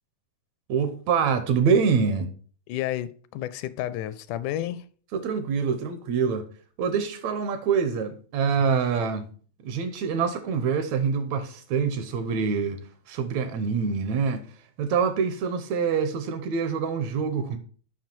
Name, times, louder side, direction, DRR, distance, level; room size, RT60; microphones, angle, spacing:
voice 1, 0.7-2.3 5.1-6.5 6.8-9.3 9.6-14.5 14.8-17.6, right 6 dB, 75° right, 1.9 m, -25 dB
voice 2, 2.7-4.8, left 13 dB, 85° left, 2.0 m, -31 dB
7.5 x 5.8 x 4.4 m
omnidirectional pair, 3.5 m